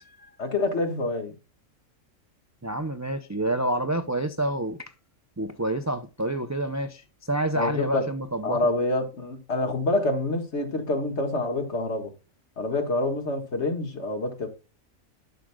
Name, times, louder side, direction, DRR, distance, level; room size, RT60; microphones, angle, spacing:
voice 1, 0.4-1.3 7.6-8.0 8.4-12.1 12.6-14.5, left 2 dB, 55° left, 1.9 m, -27 dB
voice 2, 2.6-4.8 5.4-8.9, right 1 dB, 25° right, 0.3 m, -28 dB
12.5 x 6.3 x 2.3 m
omnidirectional pair, 1.4 m